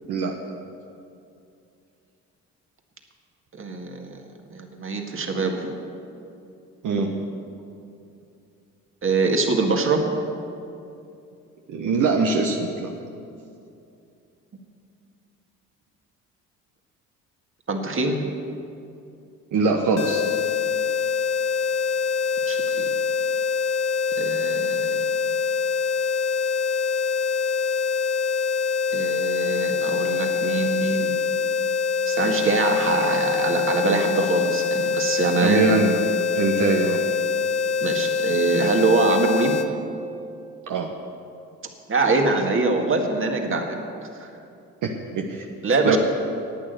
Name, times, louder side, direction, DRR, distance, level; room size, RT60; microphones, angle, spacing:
voice 1, 3.5-5.7 9.0-10.0 17.7-18.2 22.5-22.9 24.2-25.1 28.9-31.2 32.1-35.6 37.8-39.6 41.9-43.8 44.2-44.3 45.6-46.0, right 3 dB, 40° right, 3 dB, 1.8 m, -24 dB
voice 2, 11.7-12.9 19.5-20.2 35.4-35.9 36.3-37.1 40.7-40.9 44.8-45.5 45.8-46.0, right 4 dB, 65° right, 1 dB, 1.2 m, -22 dB
sound 1, 20.0-39.7, left 5 dB, 50° left, 0.9 m, -24 dB
11.0 x 9.0 x 8.1 m, 2.6 s
supercardioid pair, 75°, 34 cm